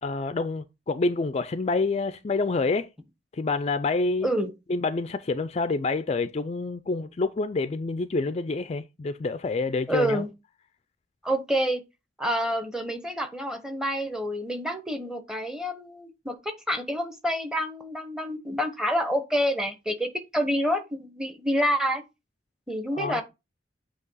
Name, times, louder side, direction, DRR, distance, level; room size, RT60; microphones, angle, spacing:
voice 1, 0.0-2.9 3.3-4.3 4.7-10.2 22.9-23.2, left 3 dB, 35° left, 0.4 m, -27 dB
voice 2, 9.9-10.3 11.2-11.8 12.2-22.0 22.7-23.2, equal, 5° right, 0.9 m, -28 dB
8.2 x 2.9 x 5.5 m
head